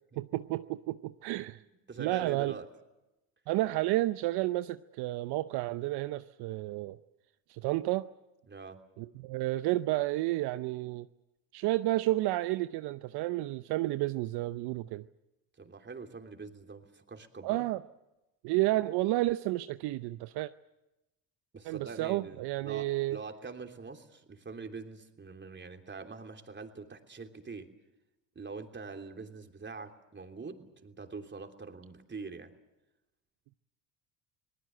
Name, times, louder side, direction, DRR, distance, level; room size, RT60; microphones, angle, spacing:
voice 1, 0.2-1.6 2.0-2.6 3.5-7.0 7.5-8.1 9.0-11.1 11.5-15.1 17.4-17.8 18.4-20.5 21.6-23.2, right 17 dB, 70° right, 12 dB, 0.8 m, -31 dB
voice 2, 1.6-2.7 8.5-8.8 15.6-17.7 21.5-27.7 28.3-32.5, right 4 dB, 25° right, 5 dB, 3.2 m, -44 dB
27.5 x 19.0 x 7.8 m, 0.97 s
supercardioid pair, 75°, 41 cm